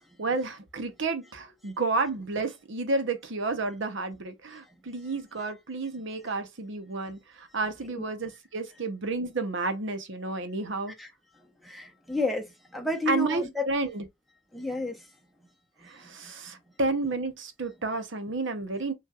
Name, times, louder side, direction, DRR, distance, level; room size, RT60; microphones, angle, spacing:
voice 1, 0.2-10.9 13.1-14.0 15.8-18.9, right 3 dB, 65° right, 0.9 m, -31 dB
voice 2, 11.6-13.7 14.5-15.1, left 2 dB, ahead, 1.0 m, -31 dB
5.6 x 3.2 x 2.4 m
head